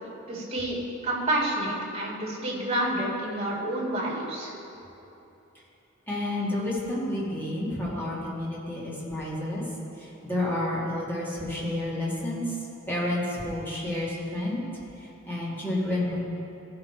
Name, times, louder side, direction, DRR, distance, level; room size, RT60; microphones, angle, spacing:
voice 1, 0.3-4.5, right 1 dB, 30° right, -5 dB, 2.0 m, -29 dB
voice 2, 6.1-9.6 10.0-12.6 12.9-14.6 15.0-16.3, left 1 dB, 10° left, -7 dB, 2.0 m, -30 dB
15.0 x 5.7 x 4.4 m, 3.0 s
head